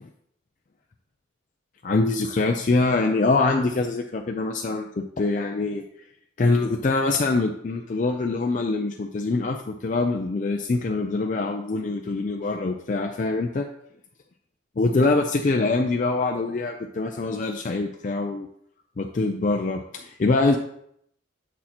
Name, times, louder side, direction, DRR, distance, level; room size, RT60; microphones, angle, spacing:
voice 1, 1.8-5.8 6.4-13.7 14.8-18.5 19.0-20.6, left 3 dB, 40° left, 3 dB, 0.4 m, -24 dB
7.2 x 6.3 x 2.9 m, 0.71 s
head